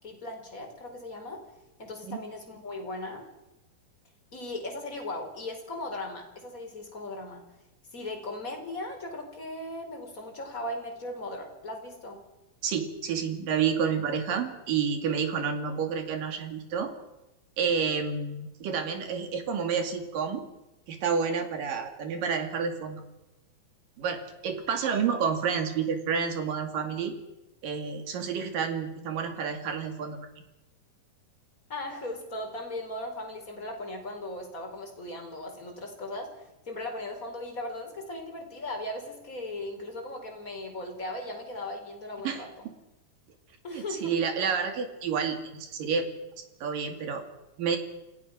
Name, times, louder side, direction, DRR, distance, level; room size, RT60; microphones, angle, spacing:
voice 1, 0.0-1.4 1.8-3.2 4.3-7.4 7.9-12.2 31.7-42.5 43.6-44.2, left 1 dB, 20° left, 2 dB, 4.7 m, -38 dB
voice 2, 12.6-16.9 17.6-20.4 20.9-23.0 24.0-27.1 27.6-30.2 42.2-42.5 43.7-46.1 46.4-47.2 47.6-47.8, right 6 dB, 65° right, 6 dB, 3.9 m, -29 dB
28.0 x 18.0 x 6.2 m, 0.99 s
omnidirectional pair, 4.3 m